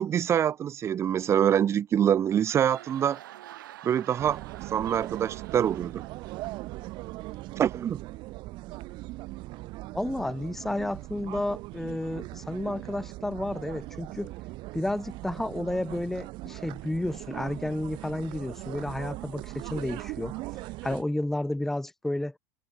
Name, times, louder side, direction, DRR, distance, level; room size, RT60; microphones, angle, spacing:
voice 1, 0.0-3.2 3.8-4.4 4.7-6.1 7.6-8.0, right 9 dB, 25° right, 0.8 m, -25 dB
sound 1, 2.2-7.7, right 14 dB, 90° right, 3.1 m, -49 dB
sound 2, 4.2-21.0, right 20 dB, 50° right, 2.2 m, -40 dB
voice 2, 9.9-14.3 14.7-22.4, left 1 dB, 5° left, 0.7 m, -31 dB
supercardioid pair, 135°, 11 cm